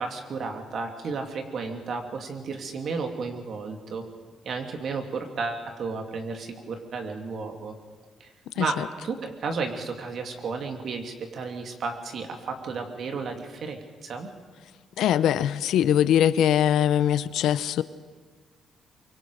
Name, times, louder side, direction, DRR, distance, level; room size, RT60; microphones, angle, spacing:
voice 1, 0.0-4.0 4.4-7.8 8.2-14.3, right 4 dB, 60° right, 4 dB, 2.9 m, -33 dB
voice 2, 8.6-8.9 15.0-17.8, left 10 dB, 80° left, 15 dB, 0.8 m, -22 dB
24.0 x 24.0 x 5.0 m, 1.5 s
cardioid pair, 90°, 0 cm